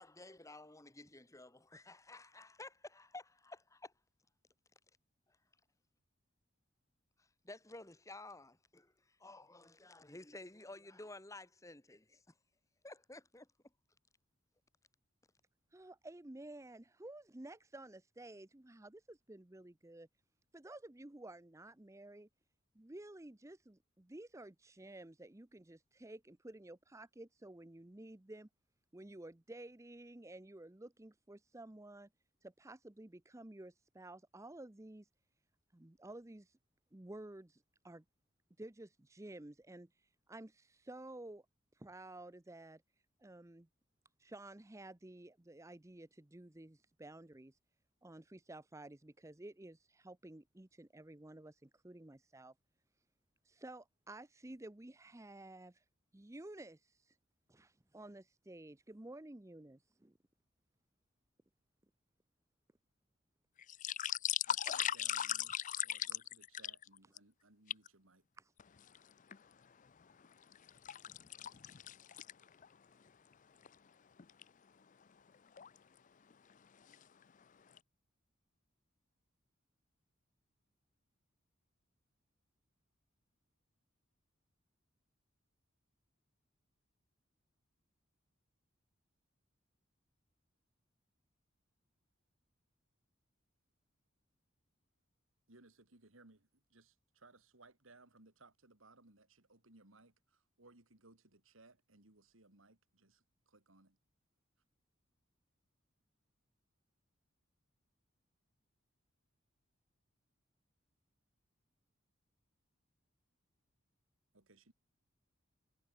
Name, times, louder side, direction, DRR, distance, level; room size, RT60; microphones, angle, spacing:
voice 1, 0.0-3.9 7.4-8.9 9.2-12.2 12.8-13.5, left 2 dB, 15° left, 1.8 m, -53 dB
voice 2, 15.7-20.1 20.5-22.3 22.7-28.5 28.9-32.1 32.4-35.1 35.7-36.6 36.9-38.0 38.6-39.9 40.3-41.4 41.7-42.8 43.2-43.7 44.2-47.6 48.0-52.5 53.4-55.8 56.1-57.2 57.5-60.1 68.4-68.5, right 1 dB, 15° right, 0.7 m, -53 dB
sound 1, 63.6-67.2 67.7-67.9 68.6-69.4 69.9-72.7 73.1-73.2 73.6-73.7 74.2-74.4 75.3-75.8 76.3-76.5 76.8-77.4 77.8-77.9, left 10 dB, 40° left, 0.5 m, -39 dB
voice 3, 64.5-68.3 95.5-104.0 114.3-114.7, right 2 dB, 90° right, 3.4 m, -64 dB
head